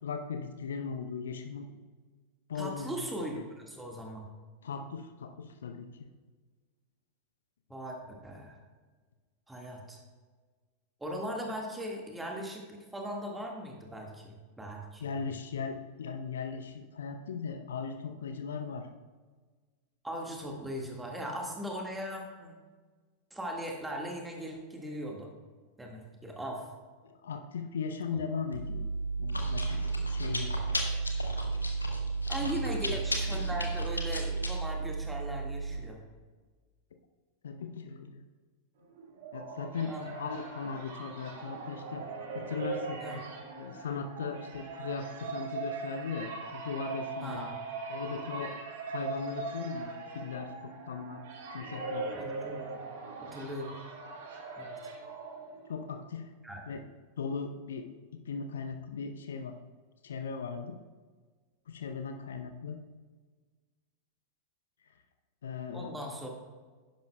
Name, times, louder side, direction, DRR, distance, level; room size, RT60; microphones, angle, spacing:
voice 1, 0.0-1.7 2.5-3.5 4.6-5.9 15.0-18.9 27.0-28.9 29.2-30.5 32.4-33.0 33.3-33.7 37.4-38.2 39.3-42.0 42.3-43.0 43.6-47.5 47.9-48.5 48.9-51.2 51.5-52.1 55.7-56.3 56.7-56.8 57.2-57.9 58.3-59.6 60.0-60.8 61.7-62.8 64.9-65.0 65.4-66.0, left 5 dB, 65° left, 7 dB, 0.6 m, -38 dB
voice 2, 2.5-3.4 3.7-4.3 7.7-8.0 8.2-8.6 9.5-10.0 11.0-15.1 20.0-22.5 23.3-25.3 25.8-26.7 28.1-28.2 32.3-36.0 39.9-40.1 43.0-43.2 47.2-47.5 52.1-52.7 53.2-53.7 54.6-54.8 56.4-56.6 65.7-66.5, equal, 5° right, 0 dB, 1.7 m, -39 dB
Chewing mastication, 28.5-35.8, right 3 dB, 80° left, 1.1 m, -32 dB
sound 1, 38.9-55.9, right 3 dB, 55° right, 1.7 m, -40 dB
11.5 x 10.5 x 2.3 m, 1.4 s
figure-of-eight pair, 90°, 0 cm